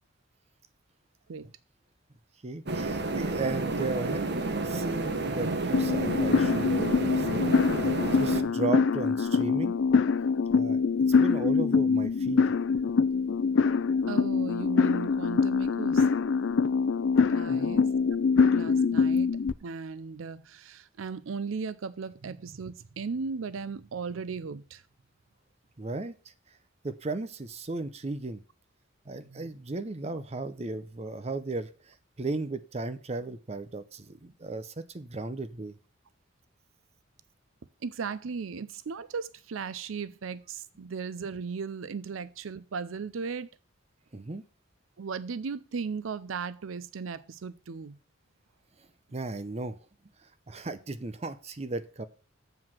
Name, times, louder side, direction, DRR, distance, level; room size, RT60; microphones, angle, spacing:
voice 1, 2.4-7.5 8.1-9.8 10.5-10.8 11.2-12.4 17.5-18.0 25.8-26.1 26.8-28.4 29.1-35.8 44.1-44.4 49.1-49.8 50.5-52.0, right 3 dB, 30° right, 0.6 m, -35 dB
sound 1, 2.7-8.4, right 3 dB, 55° right, 1.2 m, -30 dB
sound 2, 5.7-19.5, left 5 dB, 65° left, 0.5 m, -24 dB
voice 2, 14.1-16.1 17.3-17.9 18.4-19.3 19.6-24.8 29.3-29.5 37.8-43.5 45.0-48.0, right 5 dB, 85° right, 0.5 m, -37 dB
7.8 x 4.8 x 7.3 m
head